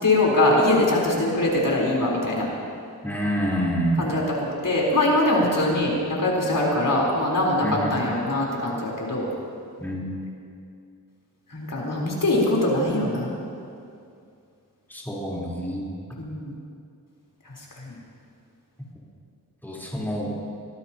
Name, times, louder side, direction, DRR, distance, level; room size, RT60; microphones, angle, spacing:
voice 1, 0.0-2.5 4.0-4.2 4.6-9.3 11.5-13.3 16.2-16.5 17.9-18.0, left 1 dB, 60° left, -4 dB, 4.1 m, -22 dB
voice 2, 3.0-4.1 7.6-7.9 9.8-10.1 14.9-15.8 19.6-20.3, equal, 5° left, -6 dB, 4.0 m, -27 dB
25.0 x 18.0 x 3.0 m, 2.4 s
wide cardioid pair, 80°, 36 cm